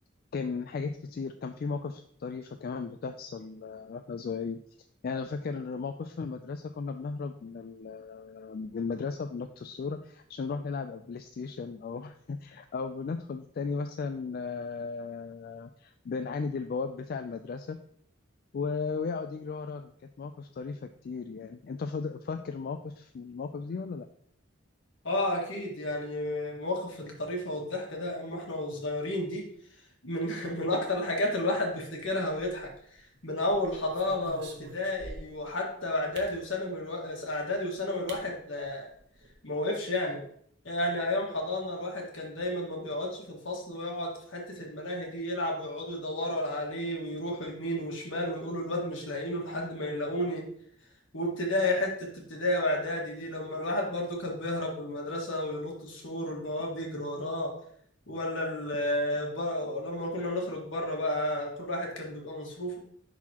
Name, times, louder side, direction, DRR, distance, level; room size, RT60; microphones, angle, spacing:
voice 1, 0.3-4.6 5.0-17.8 18.5-19.9 20.2-24.1, left 4 dB, 50° left, 7 dB, 0.3 m, -36 dB
voice 2, 25.0-29.4 30.0-32.7 33.2-38.9 39.4-40.2 40.6-50.4 51.1-57.5 58.1-62.8, left 1 dB, 75° left, -1 dB, 1.8 m, -32 dB
sound 1, 32.2-32.9 33.5-35.5 36.1-36.4 37.5-37.6 38.1-38.2 38.6-38.7 38.9-39.3, right 2 dB, 60° right, 1.1 m, -47 dB
10.5 x 4.1 x 2.9 m, 0.66 s
head